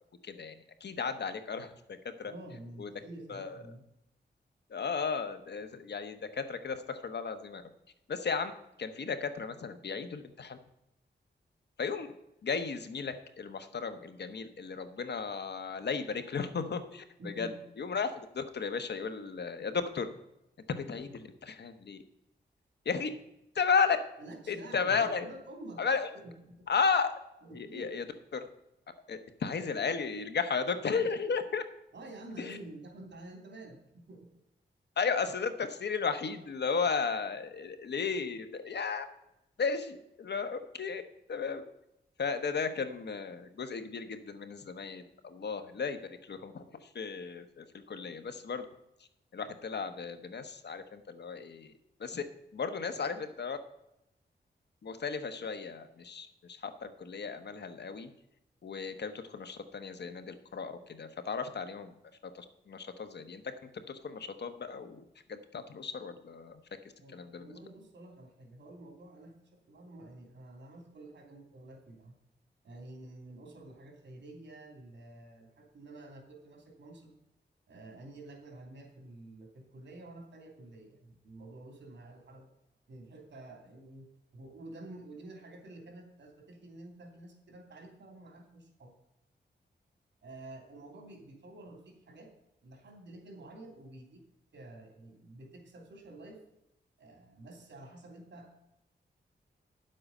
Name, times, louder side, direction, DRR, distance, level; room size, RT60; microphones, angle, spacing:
voice 1, 0.2-2.3 2.8-2.9 3.3-3.6 4.7-7.6 8.1-8.5 8.8-10.6 11.8-12.1 12.4-17.5 17.8-20.1 20.7-22.0 22.8-23.1 23.5-24.0 24.5-25.2 25.8-26.1 26.7-27.1 27.5-28.0 28.3-28.5 29.1-31.6 32.4-32.6 35.0-39.0 39.6-41.0 41.3-41.6 42.2-48.6 49.3-51.7 52.0-52.2 52.5-53.6 54.8-58.1 58.6-61.9 62.3-63.5 63.9-65.0 65.3-66.6 67.1-67.6, left 5 dB, 70° left, 9 dB, 1.1 m, -34 dB
voice 2, 2.3-3.8 17.2-17.6 24.2-25.8 26.1-26.7 27.4-27.9 31.9-34.3 67.0-72.1 72.6-77.2 77.7-82.5 82.9-84.1 84.3-88.9 90.2-92.3 92.6-94.2 94.5-96.4 97.0-98.6, right 2 dB, 80° right, 2 dB, 3.2 m, -49 dB
10.0 x 7.7 x 5.5 m, 0.87 s
wide cardioid pair, 85°, 18 cm